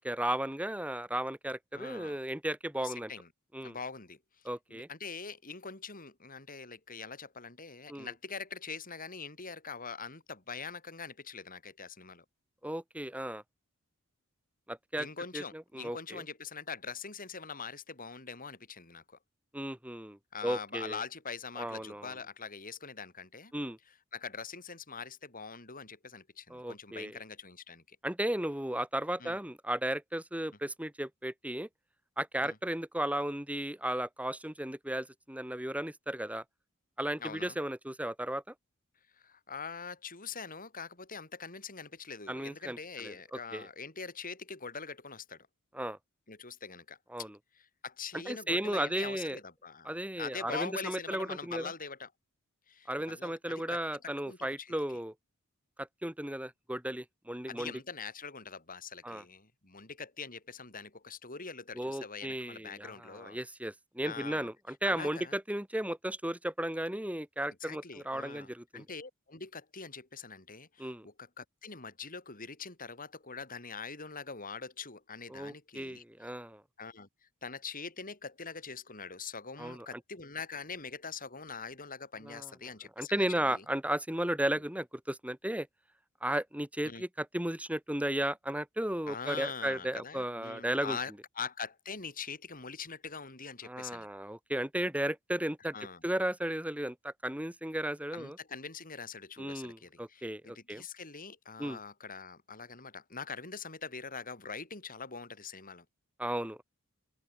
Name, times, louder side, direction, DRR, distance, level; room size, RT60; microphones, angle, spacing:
voice 1, 0.0-3.1 3.5-3.7 4.4-4.9 7.9-8.1 12.6-13.4 14.7-15.1 15.3-16.2 19.5-21.0 21.6-22.1 23.5-23.8 26.5-27.2 28.0-31.7 32.2-36.4 37.0-38.4 42.3-43.7 45.7-46.0 47.1-47.4 48.3-49.4 49.8-51.7 52.9-55.1 55.8-57.7 59.0-59.2 61.7-68.8 70.8-71.1 75.3-76.6 79.6-80.0 82.2-82.5 83.0-85.7 86.2-91.0 93.6-95.8 96.0-98.4 99.4-100.8 101.6-101.8 106.2-106.6, right 1 dB, 5° right, 2.3 m, -35 dB
voice 2, 1.7-2.2 2.8-3.3 3.6-4.2 4.7-12.2 15.0-19.2 20.3-23.5 24.1-28.0 29.2-29.4 32.4-32.6 37.2-37.6 39.1-45.5 46.3-47.0 47.5-52.1 52.7-54.7 57.5-63.4 64.0-64.5 64.8-65.4 67.6-76.0 76.8-77.1 77.4-83.6 86.8-87.0 89.1-94.1 95.7-96.0 98.1-105.8, left 5 dB, 40° left, 7.8 m, -43 dB
head